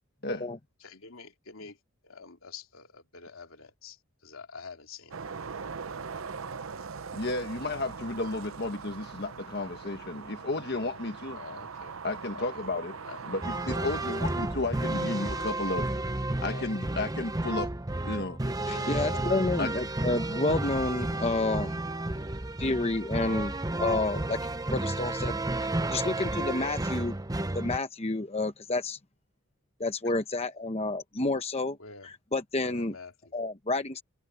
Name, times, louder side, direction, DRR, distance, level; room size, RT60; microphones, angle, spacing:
voice 1, 0.8-1.8 2.0-5.3 11.3-12.0 12.3-12.7 13.0-13.6 16.4-16.8 18.7-19.7 31.8-32.1 32.6-33.3, left 4 dB, 85° left, 3.0 m, -46 dB
sound 1, 5.1-15.5, right 5 dB, 85° right, 0.8 m, -41 dB
voice 2, 7.1-11.4 12.0-12.9 13.3-15.9 16.4-17.7 18.0-18.4 19.6-19.8, left 2 dB, 50° left, 1.5 m, -33 dB
sound 2, 13.4-27.8, right 2 dB, 20° right, 0.8 m, -32 dB
voice 3, 18.7-21.8 22.6-24.4 24.7-27.1 27.5-29.0 29.8-31.8 32.3-32.9 33.3-34.0, left 2 dB, 30° left, 0.9 m, -30 dB
head